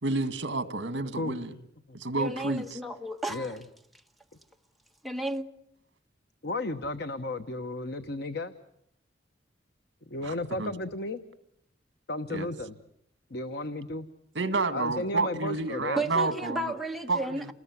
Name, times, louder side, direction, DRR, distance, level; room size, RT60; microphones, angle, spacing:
voice 1, 0.0-1.5 1.9-2.8 10.2-10.7 12.3-12.5 14.3-16.7 17.1-17.5, right 3 dB, 70° right, 1.8 m, -30 dB
voice 2, 1.2-1.6 1.9-2.0 3.3-3.6 6.4-8.5 10.1-11.2 12.1-12.7 13.3-14.1 14.7-16.0, left 2 dB, 60° left, 1.1 m, -34 dB
voice 3, 2.1-3.5 5.0-5.5 16.0-17.5, right 2 dB, ahead, 1.4 m, -33 dB
29.0 x 19.5 x 9.6 m
head